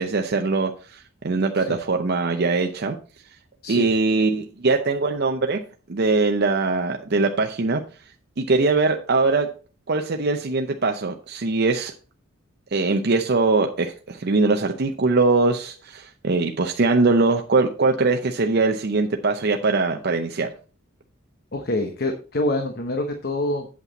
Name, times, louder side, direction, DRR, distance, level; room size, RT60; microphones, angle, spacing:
voice 1, 0.0-3.0 3.7-5.6 5.9-7.8 8.4-9.5 9.9-11.9 12.7-20.5, right 3 dB, 50° right, 4 dB, 0.7 m, -22 dB
voice 2, 21.5-23.7, left 1 dB, 50° left, 5 dB, 1.0 m, -26 dB
8.3 x 7.6 x 4.0 m, 0.36 s
head